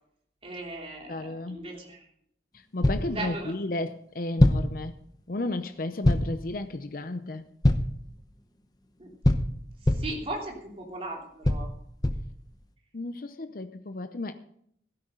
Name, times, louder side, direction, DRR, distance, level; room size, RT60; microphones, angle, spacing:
voice 1, 0.4-2.0 3.1-3.5 9.0-9.1 10.0-11.7, right 2 dB, 30° right, 0 dB, 3.1 m, -37 dB
voice 2, 1.1-1.7 2.7-4.9 5.3-7.4 12.9-14.3, left 2 dB, 50° left, 9 dB, 0.6 m, -33 dB
sound 1, 2.8-3.2 4.4-4.8 6.0-6.4 7.6-8.0 9.2-10.2 11.4-12.4, left 1 dB, 20° left, 0.8 m, -23 dB
16.0 x 13.0 x 3.8 m, 0.68 s
head